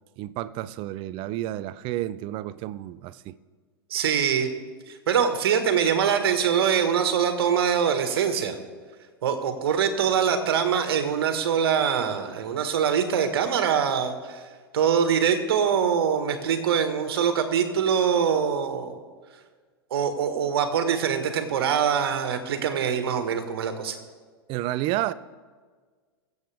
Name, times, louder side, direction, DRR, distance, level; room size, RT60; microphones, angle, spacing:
voice 1, 0.2-3.4 24.5-25.1, right 14 dB, 40° right, 0.6 m, -30 dB
voice 2, 3.9-4.5 4.9-8.6 9.2-14.4 14.7-18.9 19.9-24.0, right 7 dB, 70° right, 1.7 m, -23 dB
23.0 x 8.0 x 3.6 m
hypercardioid pair, 105°, 13 cm